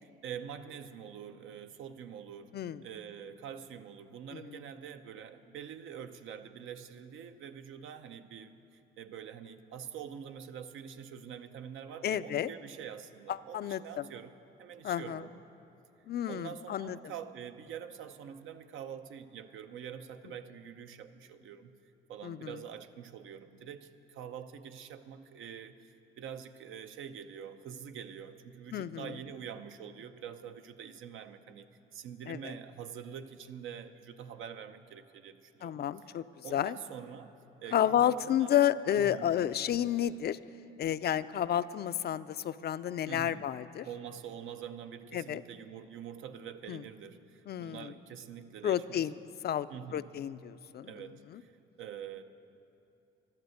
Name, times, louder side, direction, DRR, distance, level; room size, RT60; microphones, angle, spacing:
voice 1, 0.0-14.3 14.6-15.4 16.3-21.8 22.1-36.1 36.4-37.3 37.6-38.5 38.9-39.4 43.1-43.5 43.8-49.1 49.7-50.1 50.8-52.2, right 8 dB, 80° right, 8 dB, 0.7 m, -45 dB
voice 2, 12.0-12.5 13.3-14.0 14.8-15.2 16.1-17.0 22.2-22.5 28.7-29.1 32.3-32.5 35.6-36.2 36.5-36.8 37.7-40.4 40.8-43.9 45.1-45.4 46.7-46.8 47.5-47.9 48.6-49.1 49.4-49.7 49.9-50.9 51.3-51.4, left 10 dB, 55° left, 14 dB, 0.4 m, -31 dB
12.0 x 12.0 x 7.9 m, 2.8 s
cardioid pair, 90°, 20 cm